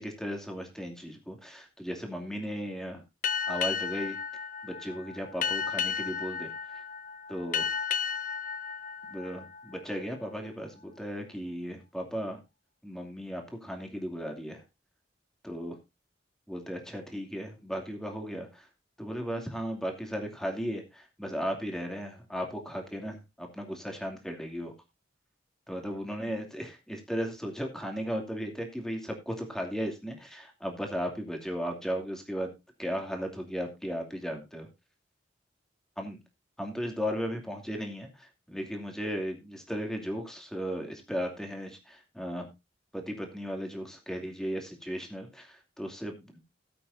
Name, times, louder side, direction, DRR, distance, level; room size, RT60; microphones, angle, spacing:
voice 1, 0.0-3.0 3.5-4.2 4.6-6.5 7.3-7.7 9.1-12.4 12.8-14.6 15.4-15.8 16.5-18.7 19.0-24.7 25.7-32.5 32.8-34.7 36.0-36.2 36.6-42.5 42.9-46.4, equal, 5° left, 2 dB, 2.6 m, -36 dB
Boat Water vehicle, 3.2-10.3, left 7 dB, 45° left, 0.6 m, -34 dB
17.0 x 8.5 x 2.6 m, 0.24 s
head